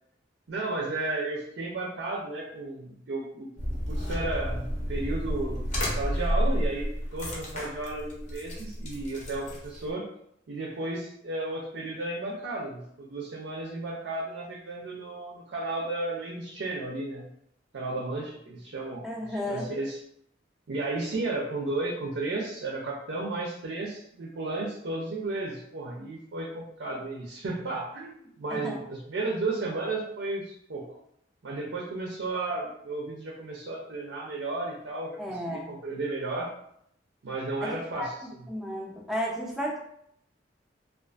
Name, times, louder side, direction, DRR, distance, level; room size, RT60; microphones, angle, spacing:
voice 1, 0.5-3.5 3.9-10.1 10.5-17.3 17.7-20.0 20.7-30.8 31.4-36.5 37.2-38.4, right 2 dB, 70° right, -3 dB, 0.4 m, -33 dB
sound 1, 3.6-9.9, equal, 40° left, 0.6 m, -31 dB
voice 2, 19.0-19.7 28.5-28.8 35.2-35.7 37.6-38.1 38.5-39.8, equal, ahead, -3 dB, 0.4 m, -33 dB
2.4 x 2.4 x 2.3 m, 0.72 s
head